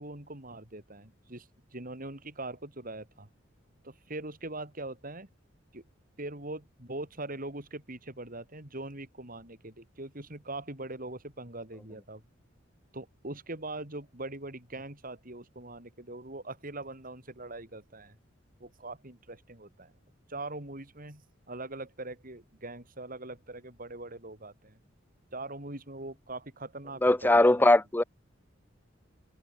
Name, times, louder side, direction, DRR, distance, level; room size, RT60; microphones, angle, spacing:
voice 1, 0.0-3.3 3.8-5.3 5.7-5.8 6.2-12.2 12.9-18.2 18.6-19.9 20.3-24.8 25.3-27.6, right 2 dB, 45° right, 4.6 m, -42 dB
voice 2, 27.0-28.0, left 1 dB, 10° left, 0.5 m, -21 dB
open air
head